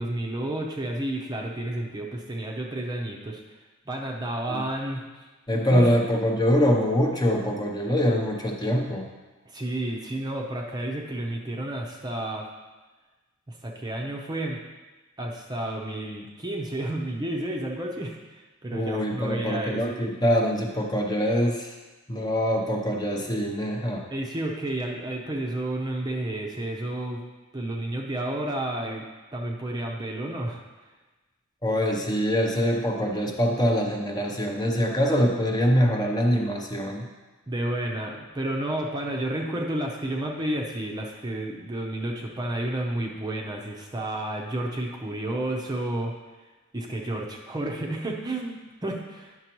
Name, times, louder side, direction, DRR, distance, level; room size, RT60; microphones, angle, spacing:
voice 1, 0.0-3.4 3.9-5.0 5.7-5.9 9.5-12.4 13.6-14.6 15.2-19.8 24.1-27.2 27.5-29.0 29.3-30.6 37.5-46.1 46.7-49.3, right 1 dB, 20° right, 0 dB, 0.6 m, -31 dB
voice 2, 5.5-9.1 18.7-21.7 22.1-24.0 31.6-37.1, equal, 20° left, 1 dB, 0.7 m, -24 dB
9.6 x 6.0 x 3.0 m, 1.2 s
head